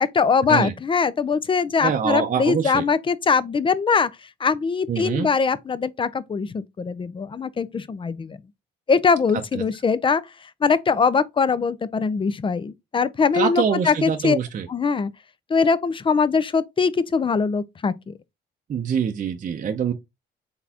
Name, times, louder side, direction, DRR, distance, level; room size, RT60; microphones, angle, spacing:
voice 1, 0.0-4.1 4.4-8.4 8.9-10.2 10.6-14.4 14.7-15.1 15.5-18.1, left 5 dB, 25° left, 0.4 m, -22 dB
voice 2, 1.8-2.8 4.9-5.3 13.3-14.7 18.7-19.9, right 7 dB, 40° right, 0.6 m, -24 dB
4.0 x 3.6 x 2.8 m
cardioid pair, 90°, 20 cm